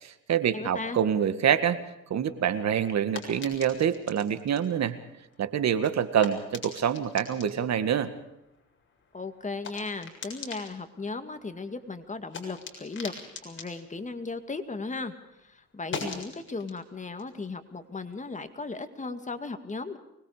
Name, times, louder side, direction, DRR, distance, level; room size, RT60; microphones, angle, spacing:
voice 1, 0.0-1.8 2.1-5.0 5.4-8.1, right 8 dB, 60° right, 11 dB, 1.9 m, -26 dB
voice 2, 0.5-1.0 9.1-13.1 13.4-15.1 15.4-20.0, left 3 dB, 25° left, 8 dB, 2.2 m, -36 dB
sound 1, 2.3-15.1 15.4-18.6, left 4 dB, 40° left, 7.2 m, -45 dB
24.5 x 21.0 x 5.0 m, 0.90 s
cardioid pair, 90°, 30 cm